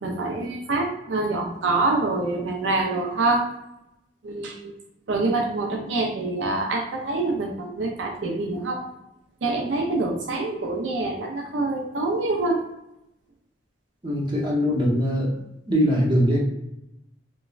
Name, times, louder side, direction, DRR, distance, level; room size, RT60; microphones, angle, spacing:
voice 1, 0.0-3.4 4.2-4.7 5.1-8.8 9.4-12.6, right 2 dB, 75° right, 1 dB, 0.4 m, -25 dB
voice 2, 14.0-15.4 15.7-16.4, equal, 25° right, -5 dB, 0.7 m, -21 dB
3.1 x 2.1 x 2.3 m, 0.84 s
head